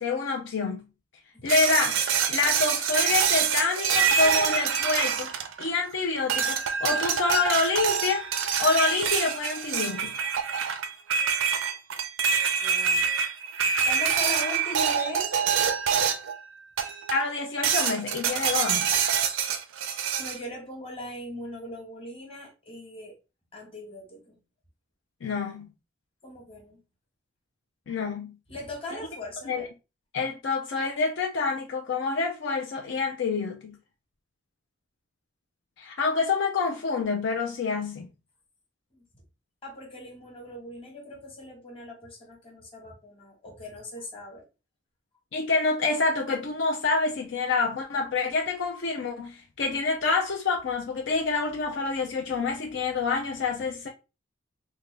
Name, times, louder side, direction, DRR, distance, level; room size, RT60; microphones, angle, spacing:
voice 1, 0.0-0.8 1.4-2.0 2.3-5.3 5.6-8.2 8.6-10.2 17.1-18.9 25.2-25.7 27.9-28.3 29.5-29.7 30.1-33.8 35.8-38.1 45.3-53.9, left 4 dB, 70° left, 0.5 m, -27 dB
sound 1, 1.5-5.9 6.3-16.4 16.8-17.3 17.6-20.4, right 7 dB, 85° right, 0.5 m, -26 dB
voice 2, 12.6-13.1 13.8-15.3 19.8-23.1 23.5-24.4 26.2-26.8 28.5-29.7 38.9-39.0 39.6-44.4, left 2 dB, 30° left, 1.3 m, -40 dB
3.6 x 2.2 x 3.3 m
head